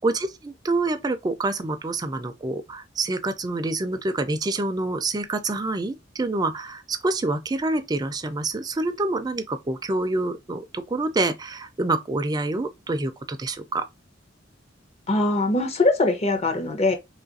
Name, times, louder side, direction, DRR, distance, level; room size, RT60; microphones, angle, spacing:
voice 1, 0.0-13.9, right 2 dB, 20° right, 0.4 m, -27 dB
voice 2, 15.1-16.9, left 2 dB, 35° left, 0.7 m, -22 dB
3.0 x 2.4 x 3.9 m
head